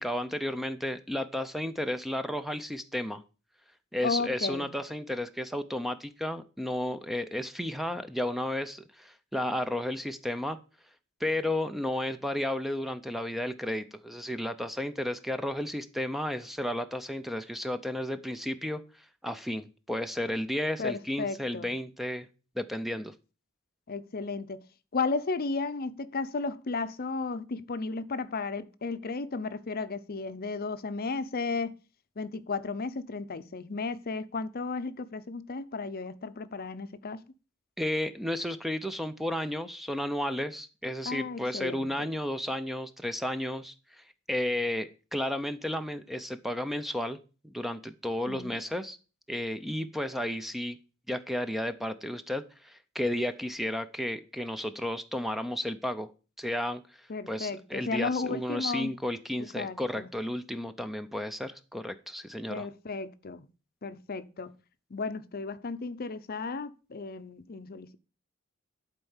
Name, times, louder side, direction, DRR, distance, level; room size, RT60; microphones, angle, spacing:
voice 1, 0.0-3.2 3.9-10.6 11.2-18.8 19.2-22.3 22.6-23.1 37.8-47.2 47.4-49.0 49.3-50.8 51.1-56.1 56.4-56.8 57.3-62.7, left 1 dB, ahead, 0.5 m, -33 dB
voice 2, 4.0-4.7 20.8-21.7 23.9-24.6 24.9-31.7 32.2-37.2 41.1-42.1 48.3-48.6 57.1-58.9 59.5-60.1 62.5-63.5 63.8-64.5 64.9-68.0, left 4 dB, 45° left, 0.6 m, -34 dB
11.5 x 4.5 x 7.1 m
head